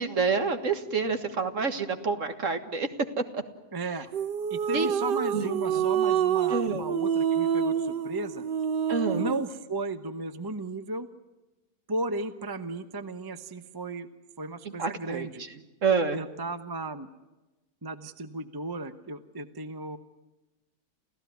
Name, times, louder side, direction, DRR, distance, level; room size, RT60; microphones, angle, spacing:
voice 1, 0.0-2.9 3.2-3.4 4.7-4.9 5.3-5.8 6.5-6.9 8.9-9.2 14.8-15.3 15.8-16.2, right 4 dB, 50° right, 9 dB, 1.9 m, -28 dB
voice 2, 3.7-4.1 4.5-8.4 9.1-11.1 11.9-14.1 14.4-15.4 16.1-17.1 17.8-20.0, right 2 dB, 15° right, 11 dB, 0.8 m, -35 dB
sound 1, 4.1-9.5, right 8 dB, 75° right, 1.7 m, -27 dB
28.5 x 15.5 x 9.4 m, 1.1 s
omnidirectional pair, 1.8 m